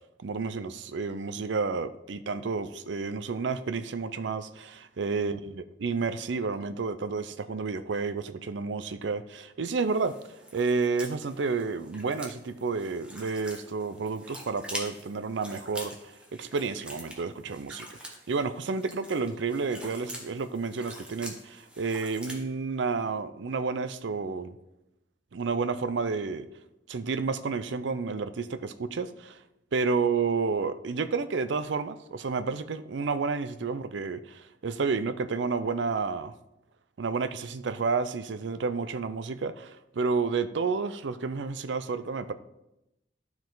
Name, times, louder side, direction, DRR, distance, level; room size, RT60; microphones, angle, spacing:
voice 1, 0.2-5.4 5.8-10.1 10.5-16.1 16.4-24.6 25.3-26.5 26.9-29.4 29.7-36.3 37.0-42.3, right 4 dB, 75° right, 12 dB, 0.5 m, -30 dB
sound 1, 9.7-22.4, equal, 5° right, 1.3 m, -45 dB
12.5 x 4.7 x 3.9 m, 0.89 s
head